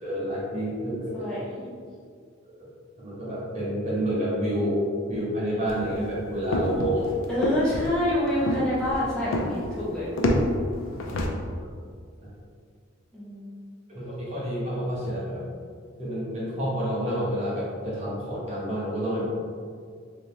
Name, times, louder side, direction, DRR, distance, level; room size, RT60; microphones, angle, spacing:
voice 1, 0.0-1.3 2.6-2.7 3.0-7.1 12.2-12.4 13.9-15.4 16.0-19.3, equal, 35° right, -7 dB, 1.0 m, -29 dB
voice 2, 1.1-1.7 7.3-10.1 13.1-13.5, left 1 dB, 5° left, -11 dB, 0.7 m, -27 dB
sound 1, 5.7-11.3, left 1 dB, 85° left, 0.5 m, -28 dB
3.3 x 2.9 x 3.2 m, 2.1 s
head